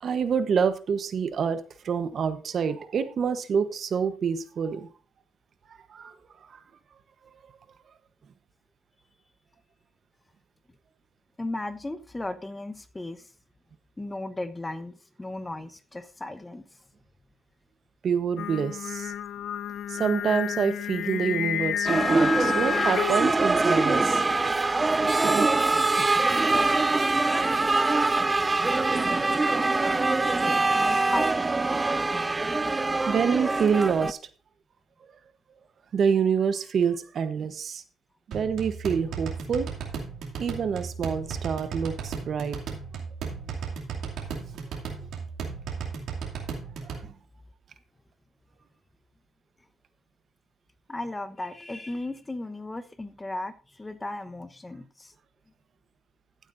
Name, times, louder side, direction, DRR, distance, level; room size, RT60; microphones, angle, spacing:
voice 1, 0.0-4.9 5.7-6.1 6.5-6.6 18.0-19.1 19.9-24.2 25.0-25.5 25.9-26.3 26.8-26.9 29.2-29.5 32.3-32.4 33.1-34.2 35.9-37.8 38.3-39.7 40.4-42.6 46.9-47.1, right 6 dB, 55° right, 11 dB, 1.0 m, -27 dB
voice 2, 11.4-13.3 14.0-16.8 30.7-31.3 43.4-43.6 50.9-55.1, left 2 dB, 15° left, 11 dB, 1.0 m, -36 dB
Singing, 18.4-23.4, left 10 dB, 70° left, 0.4 m, -30 dB
sound 1, 21.9-34.1, right 3 dB, 20° right, 0.5 m, -24 dB
sound 2, 38.3-47.0, right 5 dB, 80° right, 2.5 m, -35 dB
14.5 x 8.4 x 2.6 m, 0.37 s
cardioid pair, 90°, 0 cm